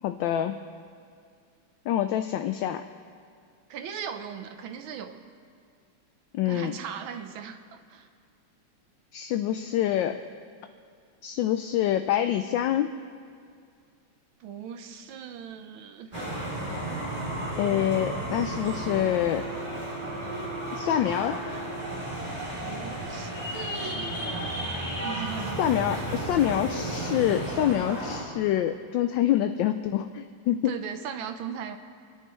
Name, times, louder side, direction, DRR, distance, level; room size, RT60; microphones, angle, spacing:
voice 1, 0.0-0.6 1.9-2.8 6.3-6.7 9.1-10.2 11.2-12.9 17.6-19.5 20.7-21.4 25.6-30.7, left 11 dB, 75° left, 8 dB, 1.1 m, -26 dB
voice 2, 3.7-5.2 6.4-8.1 14.4-16.1 22.6-24.6 24.9-26.1 30.6-31.8, right 7 dB, 70° right, 7 dB, 1.6 m, -38 dB
sound 1, 16.1-28.2, right 1 dB, 15° right, 3.4 m, -33 dB
28.0 x 10.5 x 3.1 m, 2.2 s
omnidirectional pair, 2.3 m